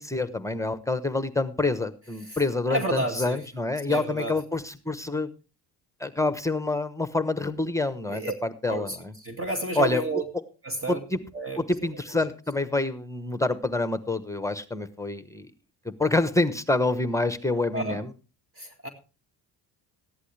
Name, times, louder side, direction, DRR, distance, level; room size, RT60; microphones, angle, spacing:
voice 1, 0.0-5.3 6.0-9.1 9.8-10.0 10.9-11.2 11.7-15.5 15.8-18.1, left 2 dB, 5° left, 12 dB, 1.1 m, -27 dB
voice 2, 2.7-3.4 3.9-4.4 8.1-8.3 8.7-10.2 10.6-11.0 11.3-11.6 17.7-18.0 18.6-18.9, right 2 dB, 30° right, 5 dB, 2.2 m, -30 dB
15.0 x 11.0 x 3.3 m, 0.33 s
cardioid pair, 85°, 41 cm